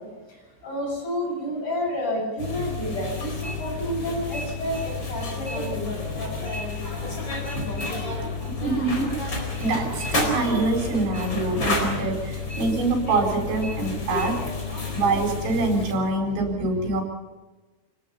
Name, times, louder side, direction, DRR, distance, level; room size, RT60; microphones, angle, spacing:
voice 1, 0.0-6.4, equal, 45° left, -1 dB, 9.2 m, -30 dB
sound 1, 2.4-15.9, left 3 dB, 25° left, 4.6 m, -30 dB
voice 2, 8.6-9.1 9.6-14.4 14.9-17.0, right 3 dB, 85° right, 1 dB, 6.6 m, -25 dB
27.0 x 18.5 x 5.7 m, 1.2 s
omnidirectional pair, 5.1 m